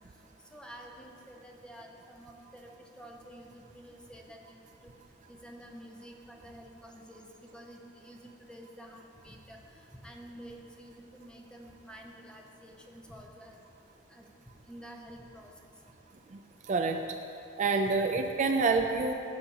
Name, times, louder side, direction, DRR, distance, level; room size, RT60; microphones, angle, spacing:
voice 1, 0.5-4.9 5.3-7.3 7.5-13.6 14.1-14.2 14.7-15.7 18.1-18.2, equal, 5° left, 0 dB, 0.7 m, -50 dB
voice 2, 16.7-17.0 17.6-19.1, right 4 dB, 40° right, 5 dB, 0.4 m, -27 dB
14.5 x 6.7 x 2.9 m, 2.6 s
head